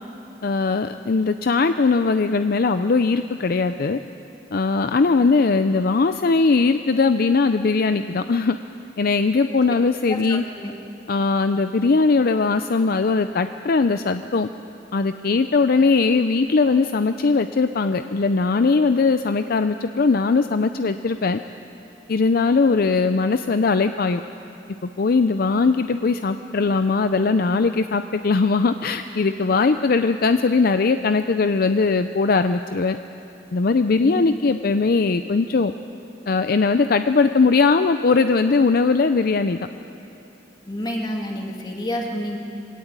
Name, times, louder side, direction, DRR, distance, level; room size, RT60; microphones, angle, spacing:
voice 1, 0.4-4.0 4.5-8.6 9.0-10.4 11.1-14.5 14.9-21.4 22.1-24.2 25.0-33.0 33.5-35.7 36.3-39.6, left 4 dB, 55° left, 9 dB, 0.5 m, -20 dB
voice 2, 10.1-10.7 34.0-34.3 40.7-42.4, equal, 25° left, 1 dB, 2.2 m, -29 dB
21.5 x 17.0 x 8.8 m, 2.9 s
head